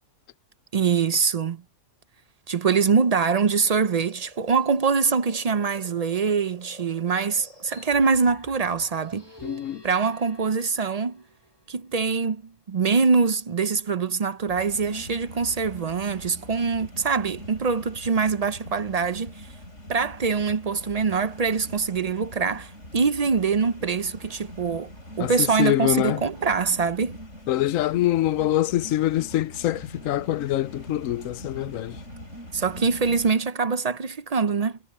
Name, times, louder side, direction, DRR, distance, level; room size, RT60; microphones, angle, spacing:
voice 1, 0.7-1.6 2.5-9.2 9.8-11.2 11.7-12.4 12.7-19.5 19.9-24.9 25.2-27.2 32.5-34.8, right 5 dB, 50° right, 0.4 m, -24 dB
sound 1, 2.9-8.3, right 1 dB, 75° right, 7.8 m, -50 dB
sound 2, 7.9-11.9, right 2 dB, 20° left, 1.8 m, -47 dB
voice 2, 9.4-9.8 25.2-25.3 25.6-26.2 27.5-31.9, left 14 dB, 90° left, 1.0 m, -24 dB
sound 3, 14.5-33.3, left 1 dB, 65° left, 8.1 m, -43 dB
omnidirectional pair, 1.3 m